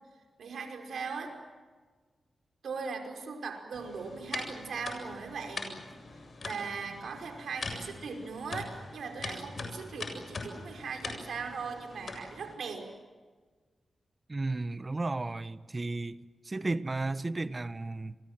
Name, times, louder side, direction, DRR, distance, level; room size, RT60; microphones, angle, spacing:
voice 1, 0.4-1.4 2.6-5.7 6.4-12.9, right 5 dB, 80° right, 5.4 m, -39 dB
sound 1, 3.7-12.5, left 3 dB, 60° left, 7.6 m, -42 dB
voice 2, 14.3-16.2 16.4-18.2, right 2 dB, 35° right, 1.2 m, -33 dB
29.5 x 23.5 x 7.6 m
cardioid pair, 50°, 0 cm